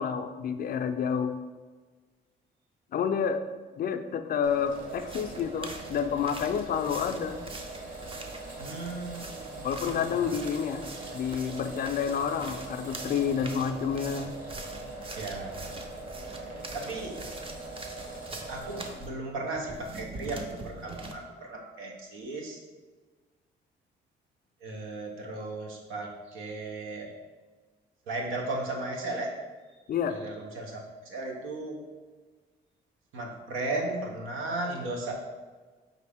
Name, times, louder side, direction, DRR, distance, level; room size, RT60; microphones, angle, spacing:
voice 1, 0.0-1.4 2.9-3.4 3.8-7.4 9.6-10.8 11.1-14.3 29.9-30.2, left 7 dB, 50° left, 8 dB, 0.4 m, -29 dB
sound 1, 4.4-19.1, right 2 dB, 45° right, 1.3 m, -42 dB
sound 2, 4.7-19.1 19.5-21.1, right 2 dB, 25° right, 0.5 m, -44 dB
voice 2, 8.6-10.3 15.2-15.8 16.7-17.2 18.5-22.6 24.6-27.1 28.1-29.3 30.1-30.8 31.0-31.8 33.1-35.2, right 2 dB, 85° right, 0 dB, 0.8 m, -36 dB
5.1 x 2.5 x 3.4 m, 1.4 s
cardioid pair, 90°, 20 cm